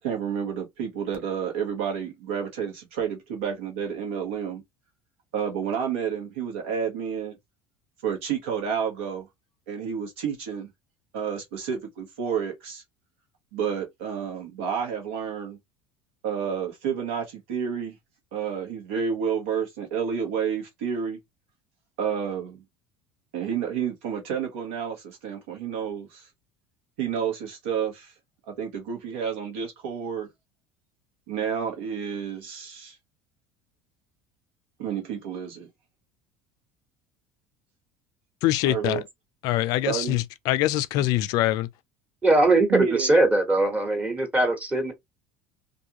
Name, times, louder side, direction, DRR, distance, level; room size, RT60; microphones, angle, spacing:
voice 1, 0.0-4.6 5.3-7.4 8.0-9.3 9.7-10.7 11.1-12.8 13.5-15.6 16.2-18.0 18.3-21.2 22.0-22.6 23.3-26.3 27.0-28.1 28.5-30.3 31.3-32.9 34.8-35.7 38.6-39.0 39.9-40.2 42.7-43.2, right 7 dB, 85° right, 1.2 m, -30 dB
voice 2, 38.4-39.0 39.4-41.7, left 15 dB, 65° left, 0.4 m, -24 dB
voice 3, 42.2-44.9, right 2 dB, 20° right, 1.2 m, -21 dB
2.5 x 2.3 x 2.9 m
supercardioid pair, 95°, 7 cm